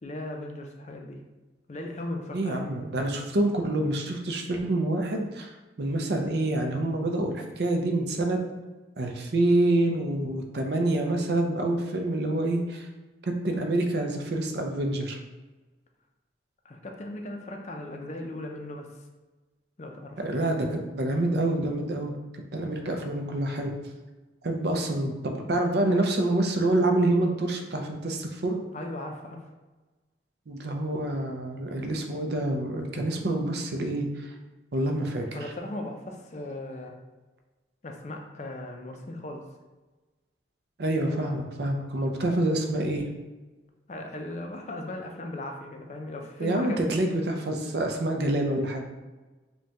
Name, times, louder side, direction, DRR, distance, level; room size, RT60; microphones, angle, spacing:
voice 1, 0.0-1.2 1.7-2.6 16.6-18.9 19.8-20.2 28.7-29.4 35.3-37.0 37.8-39.4 43.9-47.0, left 1 dB, 40° left, 2 dB, 0.4 m, -37 dB
voice 2, 2.3-5.5 5.8-8.4 9.0-12.9 13.2-15.2 20.2-22.1 22.5-23.7 24.4-28.6 30.5-34.3 34.7-35.2 40.8-43.1 46.4-48.8, right 1 dB, 60° right, 3 dB, 0.5 m, -27 dB
5.3 x 2.2 x 2.8 m, 1.2 s
head